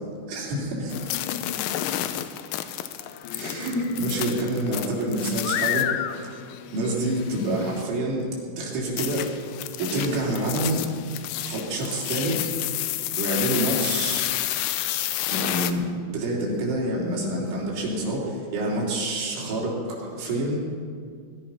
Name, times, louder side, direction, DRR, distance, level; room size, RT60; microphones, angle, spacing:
voice 1, 0.3-1.7 2.1-2.3 3.3-5.9 6.7-8.3 8.6-9.3 9.8-10.9 11.5-12.8 13.2-14.2 15.3-20.6, right 1 dB, 75° right, -4 dB, 5.7 m, -27 dB
sound 1, 0.9-7.8 9.0-15.7, left 13 dB, 85° left, 3.1 m, -30 dB
20.5 x 12.0 x 5.7 m, 2.1 s
omnidirectional pair, 5.6 m